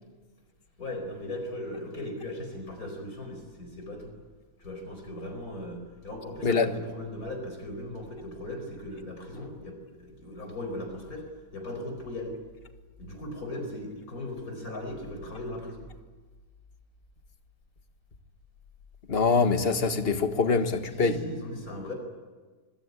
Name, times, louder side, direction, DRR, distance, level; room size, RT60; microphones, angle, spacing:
voice 1, 0.8-4.1 4.6-11.2 11.5-12.3 13.0-15.8 20.9-21.9, left 1 dB, 75° left, 4 dB, 5.2 m, -38 dB
voice 2, 19.1-21.2, left 4 dB, 40° left, 7 dB, 1.8 m, -24 dB
25.0 x 22.0 x 9.8 m, 1.3 s
omnidirectional pair, 1.5 m